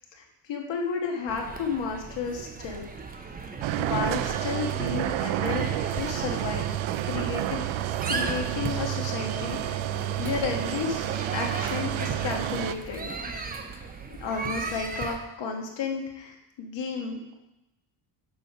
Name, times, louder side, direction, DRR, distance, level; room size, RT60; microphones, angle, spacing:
voice 1, 0.1-2.9 3.8-5.7 5.9-6.7 7.0-7.7 8.1-9.8 10.2-13.1 14.2-17.3, left 5 dB, 65° left, 2 dB, 1.5 m, -32 dB
sound 1, 1.3-15.2, right 4 dB, 20° right, 0.6 m, -37 dB
sound 2, 3.6-12.7, right 13 dB, 90° right, 0.5 m, -30 dB
6.8 x 5.1 x 5.4 m, 0.93 s
cardioid pair, 140°, 47 cm